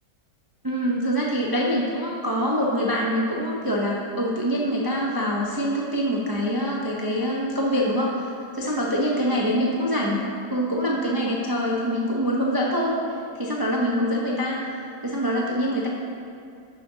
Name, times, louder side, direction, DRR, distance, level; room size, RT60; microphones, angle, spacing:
voice 1, 0.6-8.3 8.5-10.2 10.5-12.9 13.3-14.7 15.0-15.9, equal, 30° right, -4 dB, 0.4 m, -24 dB
14.5 x 6.3 x 2.8 m, 2.4 s
omnidirectional pair, 2.0 m